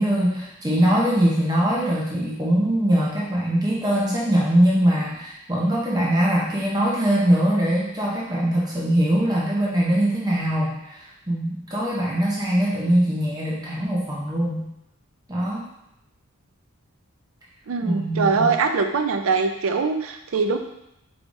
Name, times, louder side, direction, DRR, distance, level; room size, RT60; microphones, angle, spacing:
voice 1, 0.0-14.7 15.3-15.7 17.8-18.5, right 1 dB, 15° right, -6 dB, 0.7 m, -22 dB
voice 2, 17.7-20.6, right 4 dB, 65° right, 6 dB, 0.4 m, -22 dB
4.7 x 3.3 x 2.6 m, 0.84 s
head